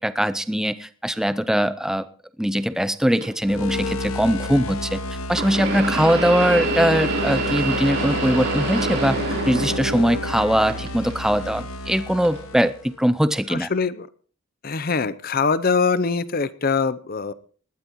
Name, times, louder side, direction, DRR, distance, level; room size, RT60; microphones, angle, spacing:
voice 1, 0.0-2.1 2.4-5.0 5.3-9.2 9.5-13.7, equal, 5° right, 12 dB, 0.5 m, -21 dB
sound 1, 3.2-3.3 5.3-10.4 10.7-11.5 12.2-12.4 13.4-13.5, right 2 dB, 50° right, 3.7 m, -27 dB
sound 2, 3.4-12.9, left 1 dB, 80° left, 0.9 m, -30 dB
voice 2, 13.5-14.1 14.6-17.3, left 5 dB, 45° left, 16 dB, 0.7 m, -23 dB
20.0 x 13.0 x 3.1 m, 0.43 s
head